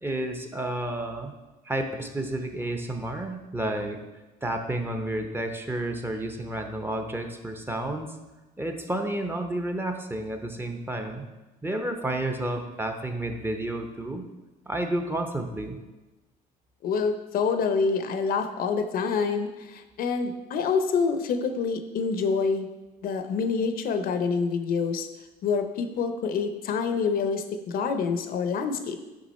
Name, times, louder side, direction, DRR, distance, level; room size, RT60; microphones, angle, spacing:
voice 1, 0.0-1.3 1.6-4.0 4.4-8.1 8.6-11.2 11.6-14.3 14.7-15.8, right 1 dB, 15° right, 5 dB, 0.6 m, -31 dB
voice 2, 16.8-22.7 23.0-25.1 25.4-29.0, left 5 dB, 60° left, 7 dB, 0.6 m, -27 dB
6.2 x 4.9 x 4.1 m, 1.1 s
cardioid pair, 110°, 17 cm